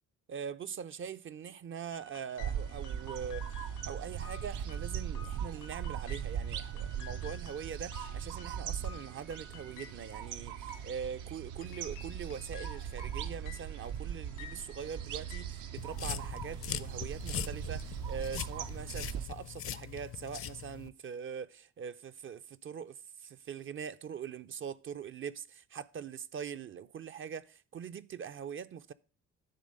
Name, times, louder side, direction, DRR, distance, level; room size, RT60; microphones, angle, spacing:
voice 1, 0.3-28.9, right 7 dB, 45° right, 0.4 m, -42 dB
sound 1, 1.9-16.4, left 6 dB, 85° left, 1.5 m, -54 dB
sound 2, 2.4-19.3, right 9 dB, 80° right, 0.7 m, -39 dB
sound 3, 15.8-20.9, left 10 dB, 45° left, 0.5 m, -41 dB
10.5 x 3.6 x 6.4 m
cardioid pair, 90°, 30 cm